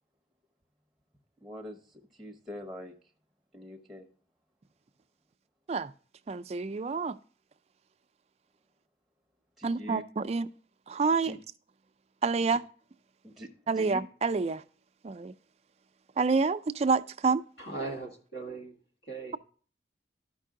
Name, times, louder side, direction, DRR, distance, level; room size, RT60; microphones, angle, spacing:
voice 1, 1.4-2.9 3.5-4.1 9.6-10.0 11.2-11.4 13.2-14.0, equal, ahead, 0.8 m, -43 dB
voice 2, 6.3-7.2 9.6-10.5 10.9-11.3 12.2-12.6 13.7-14.6 15.0-15.3 16.2-17.4, right 4 dB, 35° right, 0.3 m, -28 dB
voice 3, 17.6-18.8 19.0-19.4, right 3 dB, 65° left, 2.0 m, -38 dB
12.0 x 5.3 x 3.6 m
head